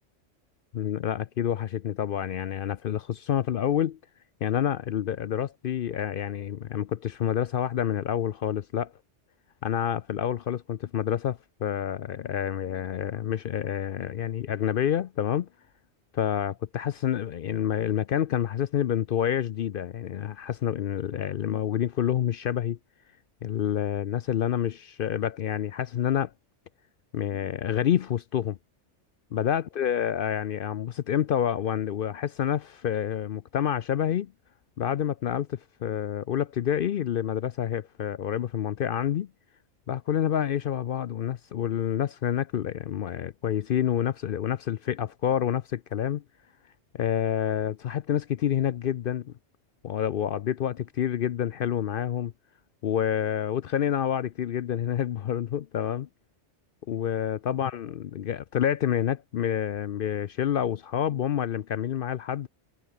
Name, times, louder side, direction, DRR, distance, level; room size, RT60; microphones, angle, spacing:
voice 1, 0.7-4.0 4.4-8.9 9.6-15.5 16.1-22.8 23.4-26.3 27.1-28.6 29.3-34.3 34.8-39.3 39.9-46.2 46.9-49.3 49.8-52.3 52.8-56.1 56.9-62.5, left 10 dB, 60° left, 0.6 m, -28 dB
omnidirectional pair, 1.3 m